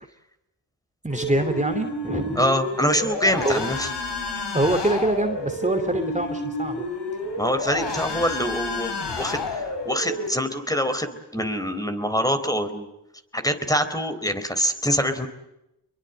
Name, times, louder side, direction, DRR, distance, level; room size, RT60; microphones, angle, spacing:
voice 1, 1.0-2.5 3.4-3.6 4.5-6.9, right 2 dB, 15° right, 6 dB, 2.8 m, -25 dB
sound 1, 1.1-10.3, left 2 dB, 75° left, 5.4 m, -30 dB
voice 2, 2.4-3.9 7.4-12.9 13.3-15.3, equal, 10° left, 9 dB, 4.0 m, -25 dB
26.0 x 23.0 x 7.9 m, 0.89 s
cardioid pair, 55°, 42 cm